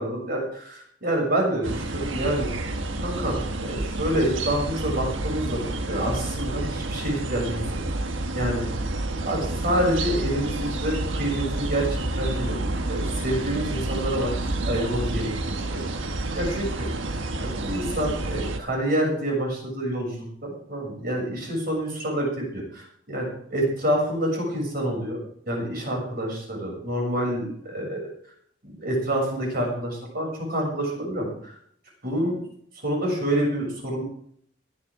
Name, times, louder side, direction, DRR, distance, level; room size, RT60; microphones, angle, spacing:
voice 1, 0.0-2.5 3.0-7.6 8.3-8.7 9.3-12.6 12.8-14.3 14.6-16.9 17.4-28.1 28.6-31.6 32.0-32.4 32.8-34.0, right 1 dB, 50° right, -1 dB, 7.2 m, -27 dB
sound 1, 1.6-18.6, right 2 dB, 85° right, 1.4 m, -29 dB
22.0 x 10.0 x 3.7 m, 0.64 s
head